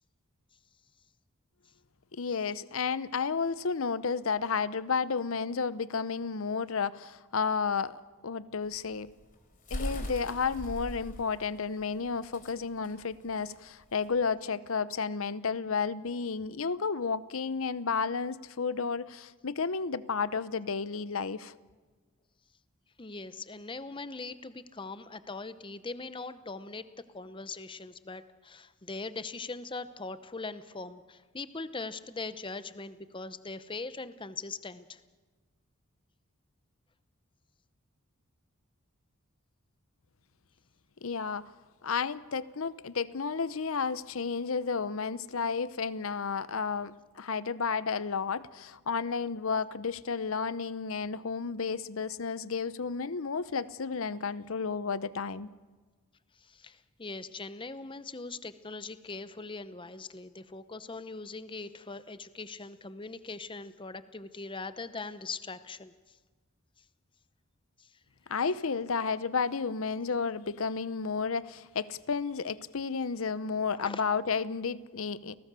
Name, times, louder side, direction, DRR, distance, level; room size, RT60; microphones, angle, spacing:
voice 1, 2.1-9.1 9.7-21.5 41.0-41.5 41.8-55.5 68.3-75.4, left 5 dB, 70° left, 0.8 m, -32 dB
sound 1, 8.6-14.2, equal, 40° left, 3.6 m, -40 dB
voice 2, 23.0-26.8 27.1-35.0 56.5-65.9 67.8-67.9 73.8-74.0, left 3 dB, 25° left, 0.8 m, -41 dB
29.5 x 18.5 x 6.9 m
head